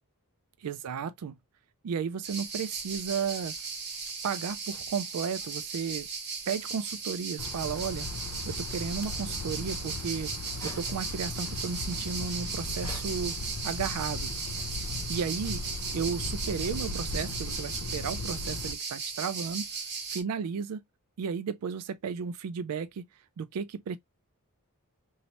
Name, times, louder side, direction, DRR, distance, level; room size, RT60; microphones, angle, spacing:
voice 1, 0.6-1.4 1.8-3.5 4.2-6.1 6.5-8.1 8.5-10.3 10.6-13.3 13.6-14.3 15.1-15.6 15.9-19.7 20.1-20.8 21.2-23.1 23.4-24.0, right 6 dB, 85° right, 0.4 m, -34 dB
sound 1, 2.2-20.2, right 5 dB, 50° right, 1.0 m, -37 dB
sound 2, 7.4-18.7, left 3 dB, 80° left, 0.5 m, -38 dB
sound 3, 10.5-11.3 11.9-13.5 14.2-17.8, left 2 dB, 20° left, 1.6 m, -53 dB
3.1 x 2.7 x 2.8 m
head